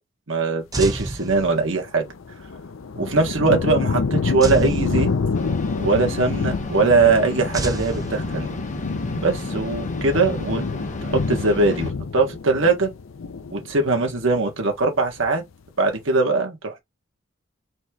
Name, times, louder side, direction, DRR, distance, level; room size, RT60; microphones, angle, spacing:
voice 1, 0.3-2.0 3.0-5.1 5.8-8.5 9.2-10.6 11.0-12.9 13.5-15.4 15.8-16.8, right 3 dB, 75° right, 1.6 m, -21 dB
sound 1, 0.7-2.0 4.4-5.7 7.5-8.8, right 2 dB, 20° right, 0.6 m, -30 dB
sound 2, 1.7-14.5 14.9-15.5, left 4 dB, 80° left, 0.6 m, -28 dB
sound 3, 5.3-11.9, left 1 dB, 35° left, 1.2 m, -32 dB
4.2 x 3.2 x 3.5 m
head